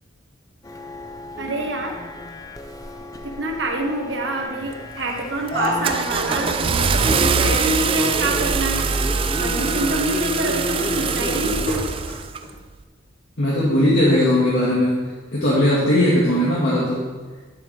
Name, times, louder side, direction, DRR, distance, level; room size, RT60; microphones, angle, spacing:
sound 1, 0.6-11.7, left 1 dB, 20° left, 0.7 m, -31 dB
voice 1, 1.4-2.0 3.2-8.9 9.4-11.9, right 1 dB, 65° right, 1 dB, 1.5 m, -26 dB
Car / Engine starting, 4.7-5.0 5.5-12.4, right 5 dB, 30° right, 0.3 m, -23 dB
sound 2, 5.2-12.5, left 1 dB, 50° left, 2.8 m, -34 dB
voice 2, 13.4-17.1, left 1 dB, 70° left, -7 dB, 1.9 m, -19 dB
12.0 x 7.2 x 3.4 m, 1.4 s
head